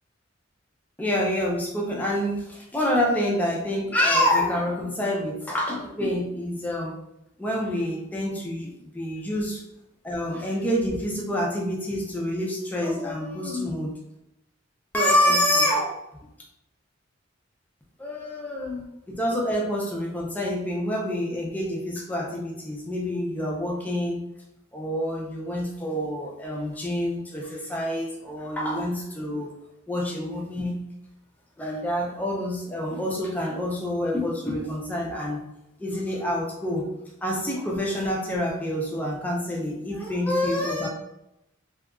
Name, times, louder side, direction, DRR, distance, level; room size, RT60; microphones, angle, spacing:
voice 1, 1.0-7.0 7.4-9.6 10.0-13.9 14.9-16.0 18.0-24.2 24.7-29.5 29.9-30.8 31.6-35.4 35.8-36.8 37.2-40.9, left 1 dB, 10° left, -2 dB, 0.4 m, -27 dB
2.7 x 2.3 x 2.3 m, 0.86 s
head